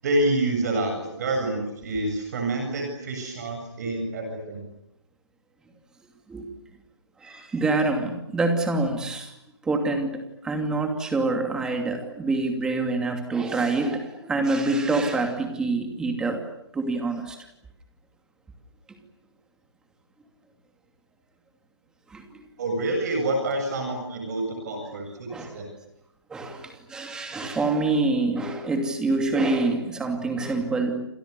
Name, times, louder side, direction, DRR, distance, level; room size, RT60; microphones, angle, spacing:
voice 1, 0.0-4.7 22.6-25.7, right 2 dB, 35° right, 4 dB, 7.6 m, -27 dB
voice 2, 7.2-9.3 9.6-16.4 16.7-17.4 22.1-22.2 24.8-24.9 25.3-25.6 26.3-31.0, right 3 dB, 5° right, 5 dB, 2.6 m, -26 dB
30.0 x 27.5 x 6.9 m, 0.82 s
hypercardioid pair, 165°, 15 cm